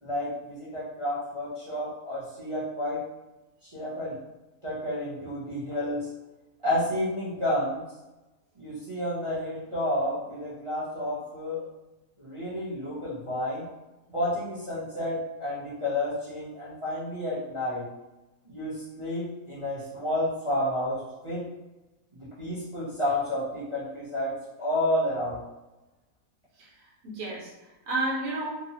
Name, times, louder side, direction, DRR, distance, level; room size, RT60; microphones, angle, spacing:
voice 1, 0.0-3.0 3.6-4.2 4.6-6.1 6.6-7.8 8.6-11.6 12.2-13.7 14.1-17.9 18.4-21.4 22.2-25.4, left 1 dB, 40° right, -10 dB, 0.4 m, -30 dB
voice 2, 26.6-28.7, right 2 dB, 65° right, -4 dB, 1.2 m, -32 dB
2.9 x 2.0 x 2.7 m, 1.0 s
omnidirectional pair, 1.7 m